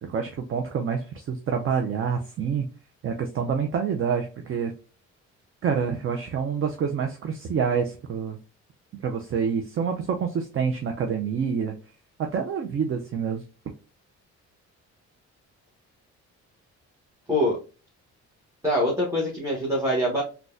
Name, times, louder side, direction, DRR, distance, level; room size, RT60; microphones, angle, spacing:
voice 1, 0.0-2.7 3.0-4.7 5.6-8.4 9.0-11.7 12.2-13.4, right 6 dB, 45° right, 4 dB, 0.5 m, -27 dB
voice 2, 18.6-20.2, equal, 10° right, -3 dB, 1.1 m, -24 dB
3.8 x 2.3 x 2.5 m, 0.34 s
cardioid pair, 90°, 30 cm